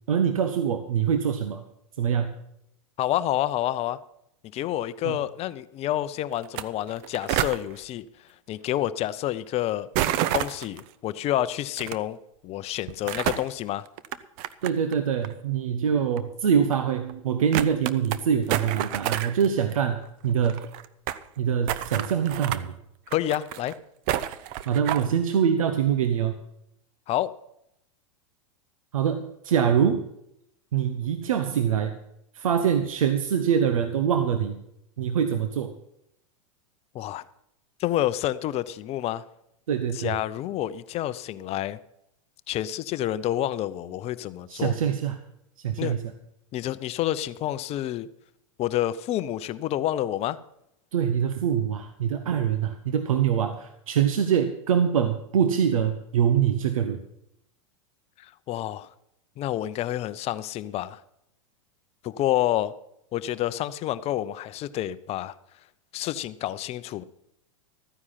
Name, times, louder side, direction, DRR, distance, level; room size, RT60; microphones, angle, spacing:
voice 1, 0.1-1.6 2.0-2.4 5.0-5.2 14.6-20.7 21.4-22.7 24.7-26.3 28.9-30.0 30.7-31.9 32.3-34.6 35.0-35.7 39.7-40.1 44.5-45.2 45.6-46.0 50.9-57.0, right 8 dB, 80° right, 8 dB, 1.0 m, -24 dB
voice 2, 3.0-4.0 4.5-8.0 8.5-9.9 10.3-12.2 12.4-13.9 23.1-23.7 27.1-27.3 36.9-37.2 37.8-39.2 39.9-41.8 42.5-44.7 45.8-46.0 46.5-48.1 48.6-50.4 58.2-58.9 59.4-61.0 62.0-62.7 63.1-65.3 65.9-67.0, left 13 dB, 35° left, 15 dB, 0.7 m, -28 dB
sound 1, 6.4-6.6 6.9-7.6 9.9-10.8 11.8-11.9 12.9-13.5 14.0-14.9 15.2-15.3 16.2-16.3 16.7-16.8 17.1-17.2 17.5-18.2 18.5-19.5 19.7-19.8 20.0-20.1 20.3-21.2 21.7-22.6 23.1-23.7 24.1-25.1, right 12 dB, 50° right, 0.8 m, -28 dB
14.0 x 9.7 x 5.8 m, 0.79 s
hypercardioid pair, 100°, 17 cm